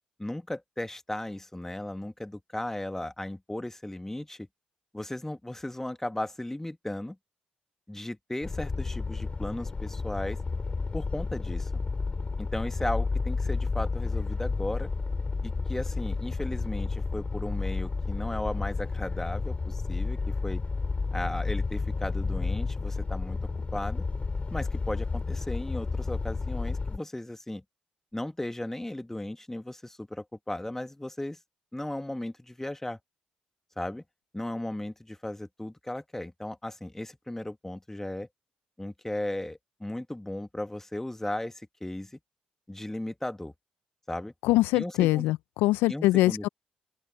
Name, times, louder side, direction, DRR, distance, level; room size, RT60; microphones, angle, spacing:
voice 1, 0.2-4.5 4.9-7.2 7.9-10.4 10.9-11.7 12.4-14.9 15.4-20.6 21.1-23.4 23.7-24.0 24.5-27.6 28.1-31.4 31.7-33.0 33.8-34.0 34.3-38.3 38.8-42.2 42.7-43.5 44.1-44.3 44.7-45.3 45.9-46.5, left 1 dB, 10° left, 2.0 m, -36 dB
sound 1, 8.4-27.0, left 4 dB, 35° left, 7.3 m, -31 dB
voice 2, 44.4-46.5, left 18 dB, 75° left, 0.8 m, -23 dB
open air
hypercardioid pair, 45°, 4 cm